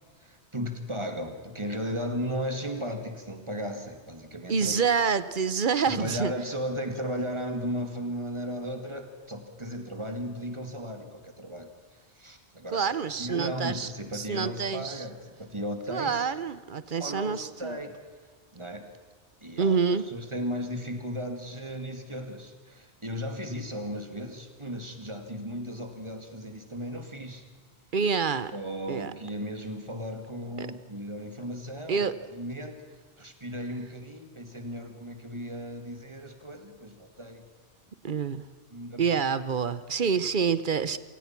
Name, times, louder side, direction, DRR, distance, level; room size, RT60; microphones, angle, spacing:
voice 1, 0.2-4.8 5.9-12.9 13.2-16.2 17.0-18.0 18.5-18.8 19.4-19.8 20.1-27.4 28.5-32.8 33.2-37.5 38.7-39.2, equal, 25° right, 5 dB, 2.3 m, -36 dB
voice 2, 4.5-6.3 12.7-15.0 15.9-17.8 19.6-20.1 27.9-28.5 28.9-29.1 30.6-30.7 31.9-32.1 38.0-38.4 39.0-41.0, right 6 dB, 50° right, 15 dB, 0.9 m, -27 dB
27.0 x 18.0 x 6.0 m, 1.5 s
omnidirectional pair, 1.1 m